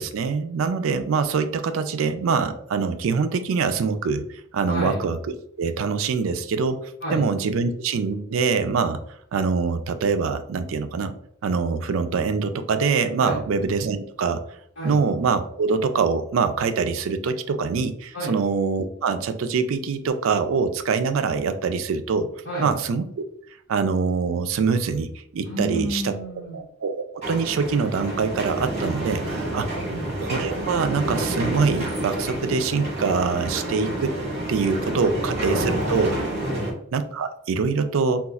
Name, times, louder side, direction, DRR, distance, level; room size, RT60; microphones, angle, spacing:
voice 1, 0.0-4.2 4.5-5.2 5.6-9.0 9.3-11.1 11.4-14.4 14.8-22.3 22.6-23.2 23.7-26.1 26.5-29.2 29.5-29.7 30.2-34.1 34.5-36.1 36.9-38.3, right 5 dB, 80° right, 9 dB, 0.4 m, -24 dB
voice 2, 4.7-5.0 7.0-7.2 13.2-13.4 14.8-15.0 18.1-18.4 22.4-22.7 25.4-26.6 29.8-30.2 35.0-36.0 36.4-36.7, right 1 dB, 65° left, -7 dB, 1.1 m, -31 dB
sound 1, 27.2-36.7, right 1 dB, 35° right, 1.3 m, -29 dB
4.0 x 2.3 x 2.3 m, 0.67 s
head